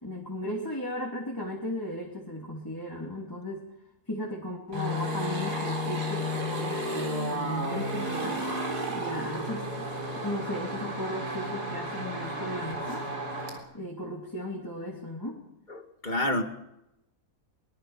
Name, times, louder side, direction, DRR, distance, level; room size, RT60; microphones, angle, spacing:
voice 1, 0.0-3.6 4.1-8.5 8.9-9.9 10.2-13.1 13.7-15.4, left 1 dB, 10° left, -2 dB, 3.0 m, -36 dB
sound 1, 4.7-13.6, equal, 85° right, 4.4 m, -32 dB
voice 2, 15.7-16.4, left 1 dB, 30° left, 6 dB, 2.0 m, -29 dB
23.0 x 21.5 x 5.7 m, 0.85 s
omnidirectional pair, 1.7 m